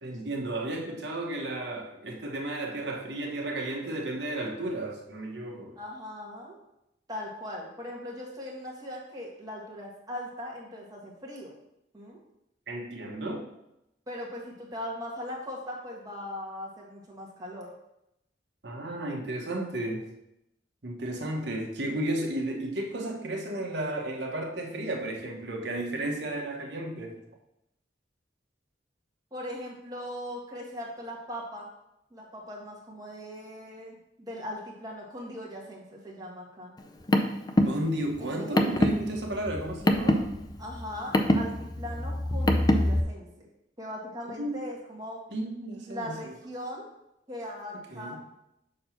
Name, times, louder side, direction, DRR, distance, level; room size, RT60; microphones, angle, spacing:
voice 1, 0.0-5.8 12.7-13.4 18.6-20.1 20.8-27.2 37.6-40.3 44.4-44.6 45.3-46.3 47.9-48.2, right 1 dB, 70° right, 1 dB, 1.2 m, -33 dB
voice 2, 5.7-6.6 7.1-11.6 11.9-12.2 14.1-17.7 29.3-31.7 32.1-36.7 38.2-38.7 40.6-43.5 43.8-45.2 45.9-46.9 47.3-48.2, left 1 dB, 20° right, -3 dB, 1.4 m, -39 dB
Car, 36.8-43.0, left 1 dB, 25° left, 0.4 m, -25 dB
6.5 x 2.9 x 5.7 m, 0.84 s
head